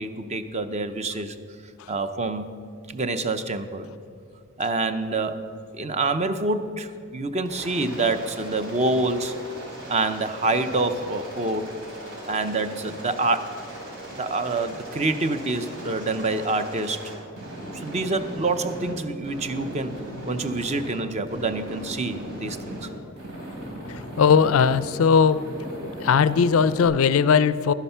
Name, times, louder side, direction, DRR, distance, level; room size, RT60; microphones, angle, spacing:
voice 1, 0.0-1.4 1.9-2.6 2.9-3.9 4.6-5.4 5.7-9.3 9.9-11.8 12.3-13.5 14.2-17.1 17.7-19.9 20.3-22.9, right 3 dB, 30° right, 10 dB, 0.5 m, -26 dB
Aircraft, 7.5-18.9 19.2-21.0 21.3-22.9 23.2-25.0 25.3-26.9, equal, 90° right, 3.2 m, -38 dB
voice 2, 24.2-25.4 26.0-27.7, left 6 dB, 70° left, 15 dB, 0.4 m, -18 dB
11.5 x 10.0 x 5.6 m, 2.3 s
head